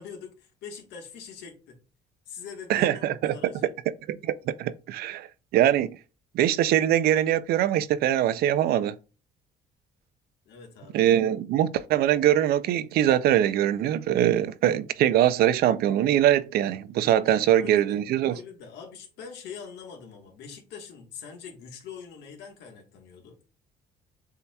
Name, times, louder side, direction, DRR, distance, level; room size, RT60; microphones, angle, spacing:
voice 1, 0.0-1.8 2.3-3.7 10.5-11.0 17.2-18.0 18.3-23.3, left 6 dB, 85° left, 1.3 m, -43 dB
voice 2, 2.7-3.3 4.1-5.3 5.5-6.0 6.3-9.0 10.9-18.3, right 11 dB, 65° right, 0.4 m, -22 dB
7.0 x 2.8 x 2.2 m
cardioid pair, 110°, 17 cm